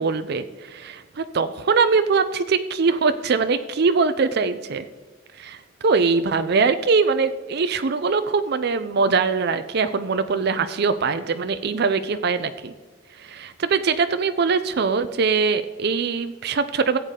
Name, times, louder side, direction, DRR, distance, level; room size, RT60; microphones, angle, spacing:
voice 1, 0.0-4.9 5.3-12.7 13.2-17.0, right 4 dB, 55° right, 10 dB, 0.5 m, -22 dB
15.0 x 8.2 x 3.7 m, 1.3 s
head